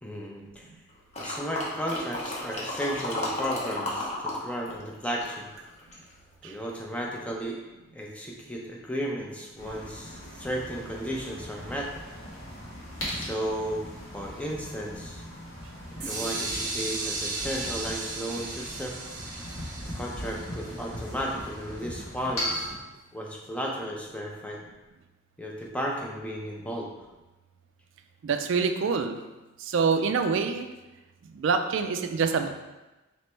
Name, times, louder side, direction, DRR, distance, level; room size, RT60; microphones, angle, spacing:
voice 1, 0.0-0.7 1.2-5.5 6.4-7.6 7.9-11.9 13.1-13.9 14.1-15.2 16.0-19.0 19.9-22.7 23.1-24.6 25.4-26.9, equal, 5° left, -2 dB, 0.5 m, -34 dB
sound 1, 1.1-4.4 4.7-6.1 6.6-6.7, left 1 dB, 35° left, 0.7 m, -33 dB
sound 2, 9.6-22.7, equal, 85° left, 1.2 m, -39 dB
sound 3, 16.0-21.8, right 2 dB, 40° right, 0.7 m, -36 dB
voice 2, 28.2-29.2 29.6-30.7 31.3-32.5, right 5 dB, 65° right, 7 dB, 0.3 m, -26 dB
3.2 x 3.0 x 4.3 m, 1.1 s
head